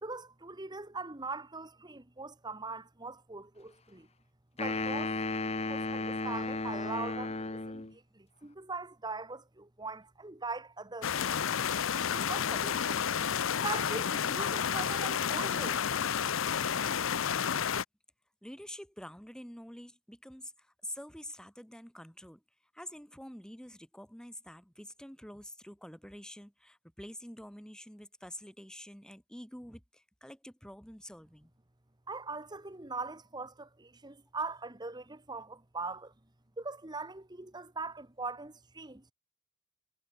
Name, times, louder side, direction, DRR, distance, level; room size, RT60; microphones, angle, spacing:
voice 1, 0.0-4.1 4.6-5.1 5.7-11.1 12.1-13.1 13.6-16.0 32.1-36.1 36.6-39.1, right 3 dB, 20° right, 1.5 m, -41 dB
sound 1, 4.6-7.9, left 3 dB, 30° left, 1.5 m, -34 dB
sound 2, 11.0-17.8, left 8 dB, 75° left, 0.6 m, -31 dB
voice 2, 18.4-22.4 22.7-31.5, left 1 dB, 5° left, 2.5 m, -47 dB
head